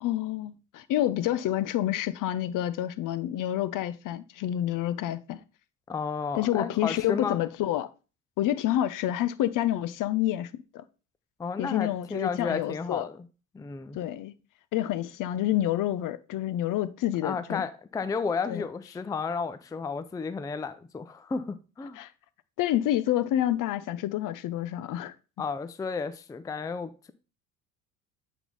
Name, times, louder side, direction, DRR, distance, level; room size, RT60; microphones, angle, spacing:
voice 1, 0.0-5.4 6.3-7.9 8.4-10.8 11.6-13.0 13.9-14.3 14.7-17.6 18.5-18.7 22.0-22.1 22.6-25.1, left 13 dB, 50° left, 0.7 m, -28 dB
voice 2, 5.9-7.4 11.4-13.3 13.5-14.0 17.2-22.0 25.4-26.9, left 5 dB, 10° left, 0.4 m, -32 dB
8.2 x 3.6 x 3.9 m
hypercardioid pair, 65°, 41 cm